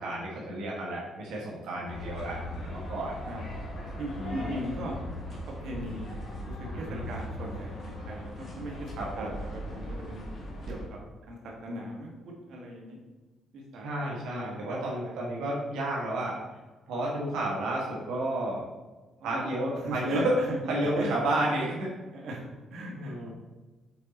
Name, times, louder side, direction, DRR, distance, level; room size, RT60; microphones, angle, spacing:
voice 1, 0.0-3.2 4.1-4.5 6.7-7.0 9.0-9.4 13.8-16.4 16.9-18.6 19.2-20.3 20.7-21.9 22.9-23.3, right 1 dB, 90° right, -4 dB, 1.4 m, -31 dB
sound 1, 1.9-10.9, left 1 dB, 55° left, 2.0 m, -39 dB
voice 2, 4.0-5.0 5.3-10.3 10.7-11.0 11.3-12.1 12.5-13.0 13.5-15.2 19.2-21.1 22.1-22.4 22.7-23.3, right 1 dB, 70° right, -1 dB, 1.5 m, -39 dB
6.5 x 4.2 x 4.0 m, 1.2 s
cardioid pair, 90°, 0 cm